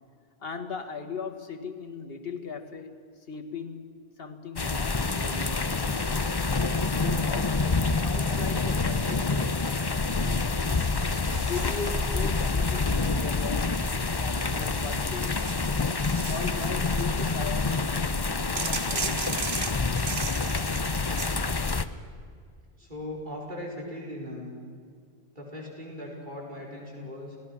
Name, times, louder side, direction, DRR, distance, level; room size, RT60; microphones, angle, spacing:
voice 1, 0.4-3.9 4.2-6.3 6.9-10.5 11.3-13.8 14.2-15.4 16.3-17.9 18.6-19.6, left 5 dB, 65° left, 5 dB, 1.9 m, -39 dB
sound 1, 4.6-21.8, left 3 dB, 25° left, 0.7 m, -27 dB
sound 2, 8.1-9.2 9.5-10.0 10.6-12.2 12.9-14.6 15.1-17.2 18.6-21.4, right 5 dB, 75° right, 1.6 m, -38 dB
voice 2, 22.8-24.6 25.3-27.4, left 1 dB, 50° right, -2 dB, 4.9 m, -39 dB
28.5 x 18.0 x 6.1 m, 2.2 s
omnidirectional pair, 1.1 m